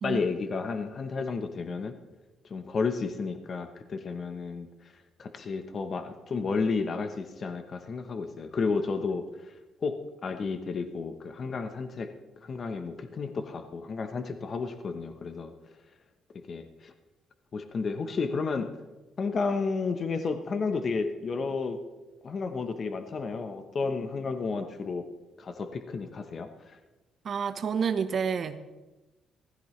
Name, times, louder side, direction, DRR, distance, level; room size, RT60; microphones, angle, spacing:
voice 1, 0.0-2.0 2.4-4.9 5.2-9.6 9.8-12.1 12.4-15.5 16.5-16.9 17.5-18.7 19.2-21.8 22.2-25.1 25.4-26.8, left 4 dB, 50° left, 8 dB, 1.1 m, -32 dB
voice 2, 27.2-28.6, right 6 dB, 55° right, 10 dB, 1.0 m, -29 dB
16.0 x 14.5 x 3.3 m, 1.1 s
cardioid pair, 90°, 0 cm